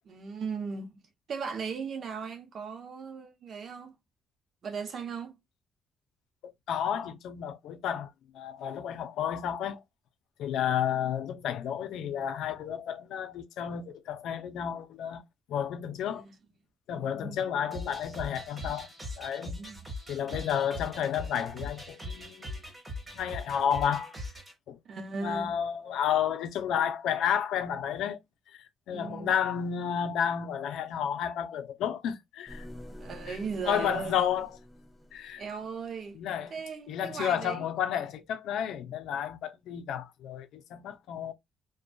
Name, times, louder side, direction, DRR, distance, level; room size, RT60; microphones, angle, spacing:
voice 1, 0.0-1.0 1.3-4.0 4.6-5.4 16.0-16.3 16.9-17.4 19.6-19.8 24.8-25.6 28.9-29.3 33.0-34.2 35.4-36.2 36.5-37.6, right 5 dB, 55° right, 0.7 m, -37 dB
voice 2, 6.4-8.1 8.3-9.8 10.4-15.2 15.5-16.3 16.9-18.9 19.2-19.6 20.1-22.6 23.1-24.1 24.7-24.8 25.2-28.2 28.5-32.7 33.3-33.4 33.7-34.5 35.1-35.4 36.2-36.5 36.9-41.3, left 9 dB, 85° left, 0.5 m, -31 dB
sound 1, 17.7-24.5, left 1 dB, 20° right, 1.2 m, -41 dB
sound 2, 32.5-36.4, left 1 dB, 5° left, 0.7 m, -48 dB
2.5 x 2.2 x 2.2 m
cardioid pair, 90°, 0 cm